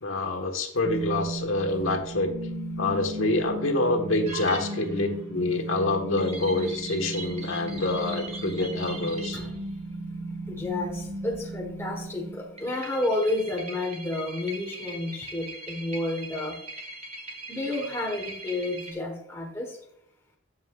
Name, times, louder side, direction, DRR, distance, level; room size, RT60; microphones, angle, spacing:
voice 1, 0.0-2.3 2.8-9.4, left 2 dB, 80° left, 4 dB, 1.3 m, -27 dB
sound 1, 0.8-12.8, right 1 dB, 65° right, 1.5 m, -36 dB
sound 2, 4.2-5.1 6.2-9.6 12.6-18.9, right 2 dB, 35° right, 1.5 m, -41 dB
voice 2, 10.5-16.6 17.5-19.8, left 2 dB, 10° left, 0 dB, 1.2 m, -31 dB
11.5 x 7.2 x 2.4 m, 0.69 s
head